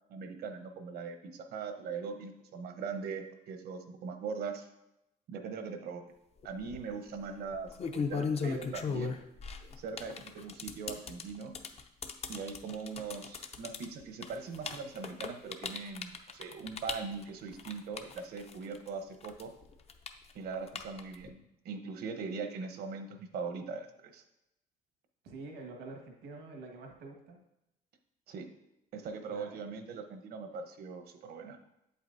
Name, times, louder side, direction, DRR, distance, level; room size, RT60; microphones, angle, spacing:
voice 1, 0.1-4.7 5.3-6.1 6.4-9.2 9.8-11.5 12.3-19.5 20.3-24.2 28.3-28.5 28.9-31.6, right 5 dB, 70° right, 6 dB, 1.0 m, -41 dB
sound 1, 6.4-6.8 7.5-18.9 19.2-21.3, left 5 dB, 40° left, 0.7 m, -37 dB
voice 2, 25.2-27.4 29.3-29.6, right 3 dB, 90° right, 2 dB, 1.6 m, -47 dB
8.1 x 8.0 x 2.7 m, 0.87 s
cardioid pair, 110°, 17 cm